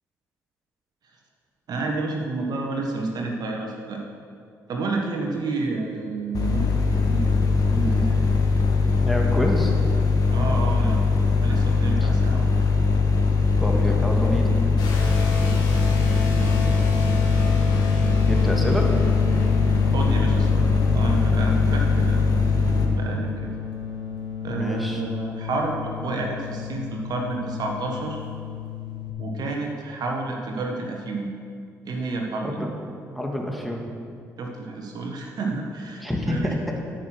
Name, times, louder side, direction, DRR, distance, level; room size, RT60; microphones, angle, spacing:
voice 1, 1.7-4.0 4.7-8.2 10.3-11.0 11.4-12.5 16.2-16.7 19.9-22.2 22.9-23.5 24.4-28.3 29.2-31.3 31.8-32.7 34.4-36.5, right 3 dB, 55° right, 1 dB, 1.4 m, -30 dB
sound 1, 6.3-22.9, left 4 dB, 50° left, 1.9 m, -21 dB
voice 2, 9.0-9.7 12.0-12.1 13.6-14.5 18.2-19.0 24.5-25.0 32.4-33.9 36.0-36.6, left 1 dB, ahead, 0 dB, 2.3 m, -27 dB
sound 2, 14.8-29.1, left 6 dB, 65° left, 2.0 m, -32 dB
12.5 x 6.3 x 6.2 m, 2.4 s
hypercardioid pair, 50°, 8 cm